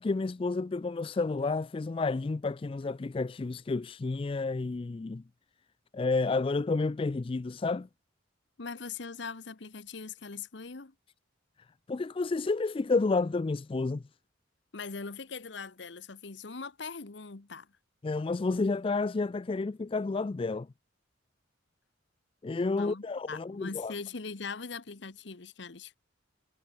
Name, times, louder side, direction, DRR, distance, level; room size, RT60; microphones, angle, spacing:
voice 1, 0.0-5.2 5.9-7.9 11.9-14.0 18.0-20.7 22.4-23.9, left 3 dB, 25° left, 0.3 m, -30 dB
voice 2, 8.6-10.9 14.7-17.7 22.7-26.0, left 4 dB, 60° left, 1.0 m, -41 dB
head